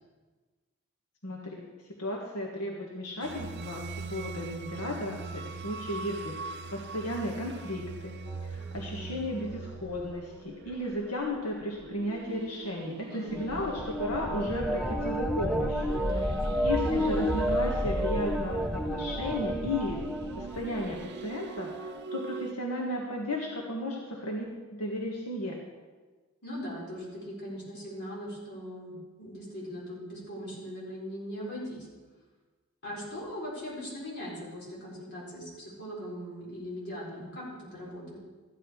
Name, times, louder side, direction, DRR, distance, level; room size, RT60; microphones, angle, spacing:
voice 1, 1.2-1.6 2.0-15.9 16.6-20.0 20.4-25.6, left 1 dB, 90° left, -2 dB, 1.6 m, -34 dB
sound 1, 3.2-22.5, right 4 dB, 50° right, 0.5 m, -42 dB
sound 2, 8.3-10.7 13.3-21.1 21.4-22.0, equal, ahead, 0.6 m, -32 dB
voice 2, 13.1-13.6 15.9-16.6 26.4-31.9 32.8-38.2, equal, 50° left, -5 dB, 4.5 m, -40 dB
14.5 x 9.7 x 4.8 m, 1.4 s
head